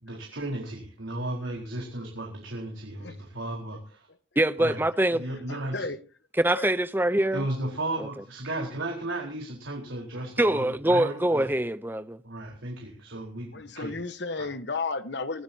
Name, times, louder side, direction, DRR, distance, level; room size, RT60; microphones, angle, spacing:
voice 1, 0.0-4.1 4.6-4.8 5.1-5.9 7.3-11.5 12.2-14.0 14.4-14.5, right 1 dB, 80° right, 4.4 m, -35 dB
voice 2, 4.4-5.3 6.4-7.4 10.4-12.2, right 1 dB, 10° right, 0.6 m, -24 dB
voice 3, 5.5-6.0 6.5-6.7 13.5-15.4, left 3 dB, 60° left, 1.2 m, -33 dB
23.5 x 16.5 x 2.8 m
head